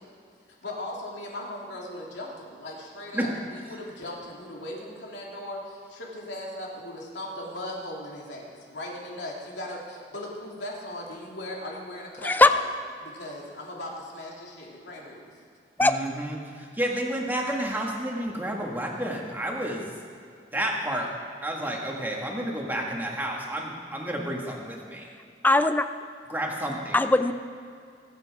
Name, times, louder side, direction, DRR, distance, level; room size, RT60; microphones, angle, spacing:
voice 1, 0.6-12.6 13.0-15.3, left 1 dB, 75° left, -2 dB, 2.9 m, -38 dB
voice 2, 12.2-12.5 15.8-16.0 25.4-25.9 26.9-27.3, left 2 dB, 10° left, 10 dB, 0.5 m, -19 dB
voice 3, 15.8-19.9 20.5-21.1 21.4-25.1 26.3-27.0, right 1 dB, 10° right, -1 dB, 1.8 m, -30 dB
23.5 x 8.3 x 4.8 m, 2.4 s
head